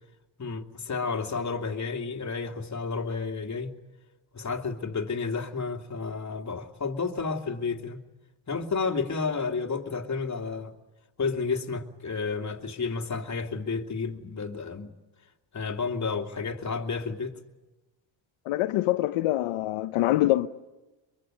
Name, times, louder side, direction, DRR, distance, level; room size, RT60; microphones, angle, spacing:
voice 1, 0.4-3.7 4.3-8.0 8.5-10.7 11.2-14.9 15.5-17.3, left 4 dB, 35° left, 2.6 m, -31 dB
voice 2, 18.5-20.5, left 15 dB, 90° left, 0.9 m, -24 dB
23.5 x 23.5 x 9.2 m
cardioid pair, 85°, 50 cm